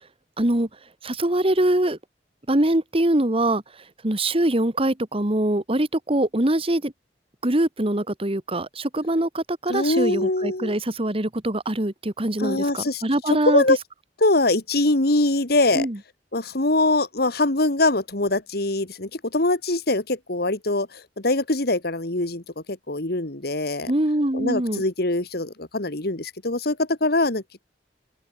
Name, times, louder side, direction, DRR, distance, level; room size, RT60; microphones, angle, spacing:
voice 1, 0.4-0.7 1.0-2.0 2.5-3.6 4.0-6.9 7.4-13.6 15.7-16.0 23.9-24.8, right 1 dB, 35° right, 1.9 m, -23 dB
voice 2, 9.7-10.8 12.4-13.8 14.2-15.9 16.3-23.9 24.3-27.6, left 2 dB, 60° left, 2.3 m, -23 dB
open air
head